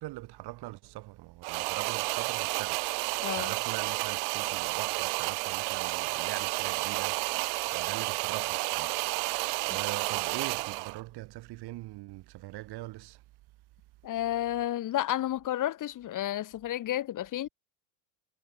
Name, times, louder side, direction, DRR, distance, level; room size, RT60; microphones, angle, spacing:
voice 1, 0.0-13.2, right 18 dB, 55° right, 7.4 m, -42 dB
sound 1, 1.4-11.0, right 30 dB, 75° right, 2.1 m, -31 dB
voice 2, 14.0-17.5, left 13 dB, 40° left, 2.4 m, -31 dB
supercardioid pair, 115°, 45 cm